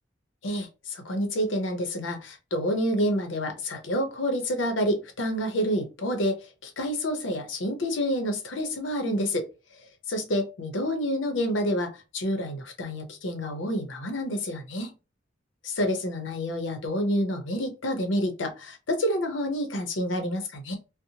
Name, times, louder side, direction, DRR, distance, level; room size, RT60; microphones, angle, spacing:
voice 1, 0.4-6.4 6.6-9.5 10.1-14.9 15.6-20.8, equal, 80° left, 0.7 m, -28 dB
2.8 x 2.1 x 2.7 m
head